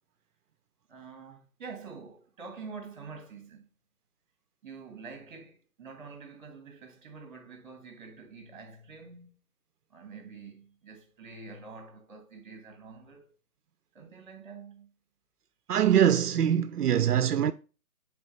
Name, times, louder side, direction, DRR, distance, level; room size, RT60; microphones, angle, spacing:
voice 1, 0.9-3.7 4.6-9.4 9.9-13.3 13.9-14.9, right 4 dB, 30° right, 1.6 m, -46 dB
voice 2, 15.7-17.5, right 10 dB, 80° right, 0.6 m, -23 dB
9.4 x 3.9 x 2.6 m
hypercardioid pair, 160°, 45 cm